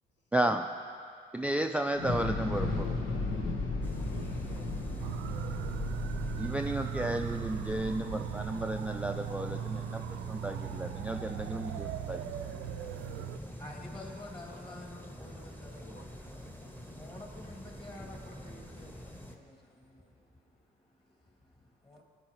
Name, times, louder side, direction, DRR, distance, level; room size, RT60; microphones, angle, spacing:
voice 1, 0.3-0.7 1.3-2.9 6.4-10.0 10.3-12.2, right 1 dB, 5° right, 0.3 m, -33 dB
Thunder / Explosion, 1.9-10.2, left 2 dB, 85° left, 1.4 m, -36 dB
voice 2, 3.8-5.3 14.5-14.6 15.7-16.2, left 2 dB, 65° left, 1.3 m, -56 dB
sound 1, 3.8-19.4, equal, 10° left, 1.0 m, -46 dB
sound 2, 5.0-13.4, right 9 dB, 85° right, 0.4 m, -38 dB
voice 3, 13.5-22.0, left 2 dB, 25° left, 2.4 m, -51 dB
19.0 x 9.1 x 3.1 m
cardioid pair, 90°, 20 cm